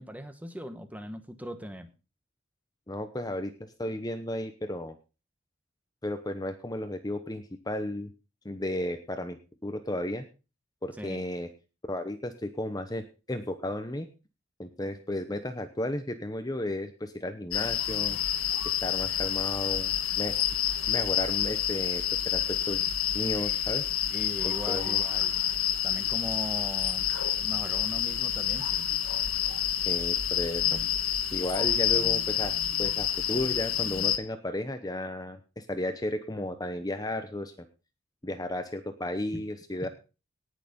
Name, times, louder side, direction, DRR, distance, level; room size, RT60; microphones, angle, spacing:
voice 1, 0.0-1.9 10.9-11.2 24.1-25.4 25.8-27.1 27.4-28.9 39.3-39.4, equal, 5° right, 9 dB, 1.2 m, -40 dB
voice 2, 2.9-4.9 6.0-8.1 8.4-9.4 9.6-10.3 10.8-11.5 11.9-14.1 14.6-18.2 18.6-20.4 20.9-22.9 23.1-23.9 24.4-25.0 29.8-30.8 31.3-37.5 38.2-39.9, left 1 dB, 20° left, 8 dB, 0.8 m, -34 dB
sound 1, 17.5-34.2, left 10 dB, 85° left, 1.4 m, -28 dB
18.0 x 6.7 x 5.2 m, 0.33 s
head